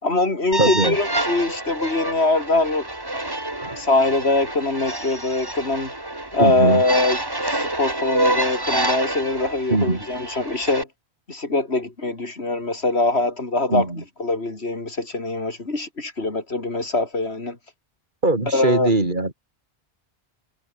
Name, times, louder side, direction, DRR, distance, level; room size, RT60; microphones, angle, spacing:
voice 1, 0.0-2.9 3.8-5.9 6.3-10.9 11.3-17.6 18.5-18.9, left 2 dB, 90° left, 4.0 m, -23 dB
sound 1, 0.5-10.8, right 1 dB, 20° right, 2.6 m, -27 dB
voice 2, 0.6-1.0 6.4-6.8 9.7-10.0 13.7-14.0 18.2-19.3, right 2 dB, 50° right, 3.5 m, -20 dB
omnidirectional pair, 1.1 m